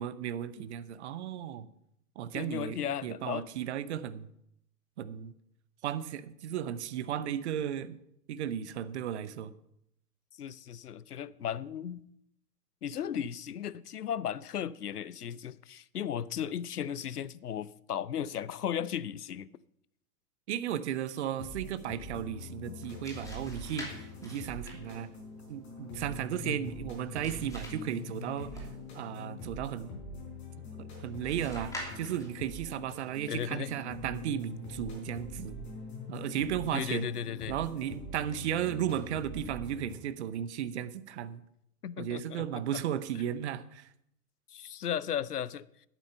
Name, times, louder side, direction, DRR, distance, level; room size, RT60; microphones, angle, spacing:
voice 1, 0.0-1.7 2.2-4.3 5.0-5.3 5.8-8.0 8.3-9.5 20.5-25.1 25.5-28.7 28.9-29.9 30.8-35.6 36.1-37.1 37.5-41.4 42.0-43.9, right 10 dB, 45° right, 0.8 m, -35 dB
voice 2, 2.3-3.5 10.4-12.0 12.8-19.5 26.4-26.6 33.3-33.7 36.7-37.6 41.8-42.8 44.5-45.7, left 9 dB, 75° left, 0.7 m, -36 dB
sound 1, 21.3-40.0, left 2 dB, 25° left, 4.8 m, -44 dB
sound 2, 22.7-29.0 31.2-32.5, left 1 dB, 5° left, 2.6 m, -47 dB
11.5 x 9.1 x 5.8 m
figure-of-eight pair, 110°, 46 cm